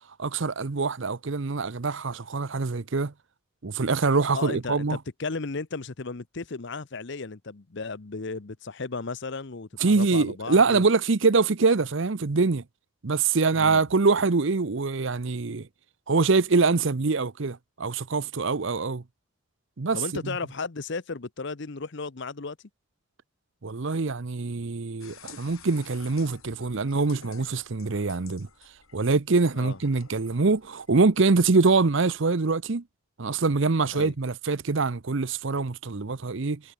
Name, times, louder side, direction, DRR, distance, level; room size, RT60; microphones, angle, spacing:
voice 1, 0.2-3.1 3.6-5.0 9.8-12.6 13.0-15.7 16.1-19.0 19.8-20.4 23.6-28.5 28.9-32.8 33.2-36.6, right 4 dB, 55° right, 0.7 m, -24 dB
voice 2, 4.3-10.8 13.5-13.8 19.9-22.6 29.6-29.8 33.9-34.1, left 4 dB, 55° left, 0.8 m, -34 dB
sound 1, 25.0-32.2, left 7 dB, 75° left, 3.2 m, -52 dB
head